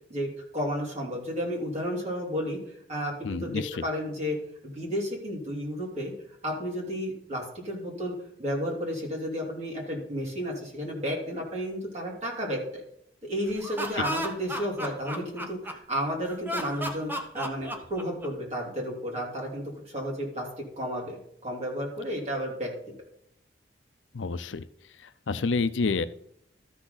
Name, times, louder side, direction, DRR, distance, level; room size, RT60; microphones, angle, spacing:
voice 1, 0.1-6.1 6.4-8.1 8.4-12.8 13.2-20.5 20.8-22.7, equal, 40° right, -2 dB, 3.1 m, -32 dB
voice 2, 3.2-3.8 24.1-24.7 25.0-26.1, left 4 dB, 90° left, 13 dB, 0.6 m, -29 dB
Laughter, 13.5-16.0 16.4-18.5, equal, 10° right, 1.0 m, -34 dB
13.0 x 6.1 x 4.0 m, 0.75 s
head